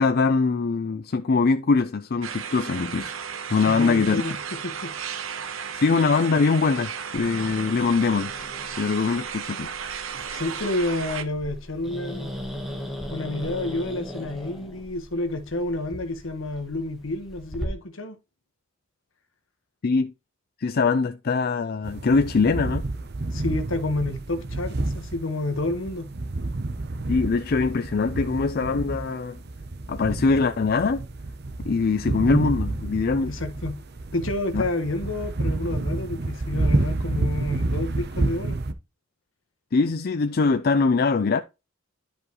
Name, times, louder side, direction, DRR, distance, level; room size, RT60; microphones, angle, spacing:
voice 1, 0.0-3.2 3.5-4.2 5.7-8.3 8.8-9.7 19.8-20.1 20.6-22.9 27.1-29.4 29.9-31.0 31.6-33.3 34.5-34.6 39.7-41.4, left 4 dB, 50° left, 0.4 m, -22 dB
sound 1, 2.2-11.2, right 7 dB, 85° right, 0.9 m, -34 dB
voice 2, 3.7-4.9 5.6-5.7 10.1-12.3 13.1-18.2 23.3-26.1 33.3-33.8 34.1-38.6, left 2 dB, 80° left, 1.4 m, -29 dB
Growling, 7.2-17.7, equal, ahead, 1.8 m, -39 dB
sound 2, 21.8-38.7, right 2 dB, 55° right, 0.8 m, -29 dB
11.0 x 5.1 x 3.1 m
head